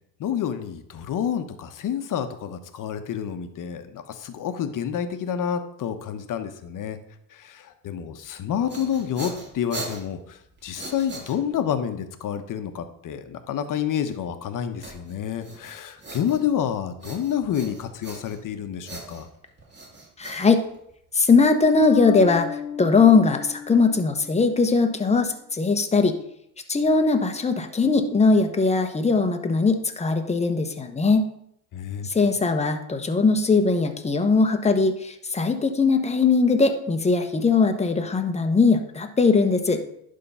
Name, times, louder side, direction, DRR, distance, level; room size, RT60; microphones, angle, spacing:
voice 1, 0.2-7.0 7.3-19.3 31.7-32.1, left 9 dB, 50° left, 9 dB, 1.1 m, -29 dB
sound 1, 8.4-11.8 14.8-16.7 17.0-18.5 18.8-21.1, right 2 dB, 25° right, 2.5 m, -40 dB
voice 2, 20.2-20.6 21.1-22.5 22.8-26.1 26.7-31.3 32.1-39.8, left 4 dB, 15° left, 6 dB, 1.0 m, -20 dB
sound 2, 21.8-25.2, left 8 dB, 75° left, 1.0 m, -34 dB
11.0 x 3.8 x 5.5 m, 0.73 s
cardioid pair, 100°, 40 cm